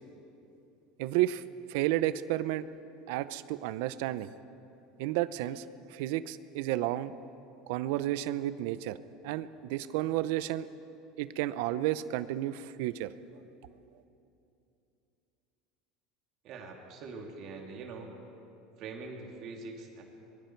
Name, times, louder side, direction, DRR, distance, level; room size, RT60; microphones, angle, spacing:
voice 1, 1.0-1.4 1.7-2.6 3.1-4.3 5.0-5.6 5.9-7.1 7.7-9.0 9.2-10.7 11.2-13.1, right 14 dB, 70° right, 15 dB, 0.6 m, -31 dB
voice 2, 16.4-18.2 18.8-20.0, right 4 dB, 45° right, 1 dB, 2.4 m, -43 dB
25.5 x 22.5 x 4.6 m, 2.8 s
supercardioid pair, 150°, 0 cm